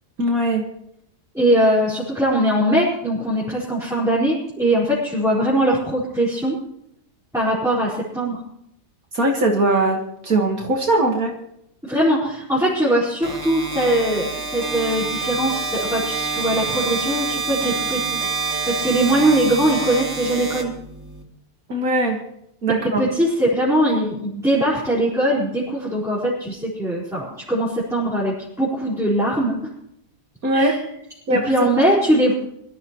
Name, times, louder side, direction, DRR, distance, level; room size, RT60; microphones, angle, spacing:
voice 1, 0.2-0.7 9.1-11.3 21.7-22.2 22.6-23.0 30.4-30.8 31.3-31.7, right 2 dB, 60° right, 1 dB, 2.1 m, -20 dB
voice 2, 1.3-6.6 7.3-8.4 11.8-14.3 14.5-20.7 22.8-29.7 30.5-30.8 31.3-32.3, right 1 dB, ahead, -8 dB, 4.4 m, -21 dB
sound 1, 13.2-21.2, right 4 dB, 40° right, 2.7 m, -27 dB
23.0 x 13.5 x 3.0 m, 0.77 s
omnidirectional pair, 1.8 m